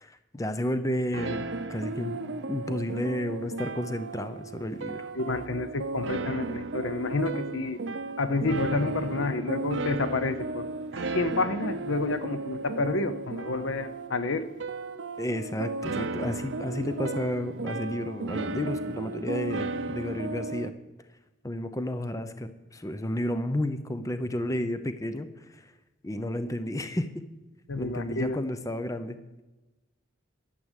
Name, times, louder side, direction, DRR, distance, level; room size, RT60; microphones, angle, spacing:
voice 1, 0.0-2.2 2.5-5.1 15.2-20.7 21.4-25.7 26.0-27.2 27.8-29.2, left 1 dB, 15° left, 10 dB, 0.6 m, -32 dB
sound 1, 1.1-20.7, right 3 dB, 65° right, 0.7 m, -35 dB
voice 2, 5.1-7.8 8.2-10.7 11.0-14.5 27.7-28.4, left 3 dB, 75° left, 12 dB, 0.8 m, -29 dB
12.5 x 7.8 x 8.1 m, 1.1 s
head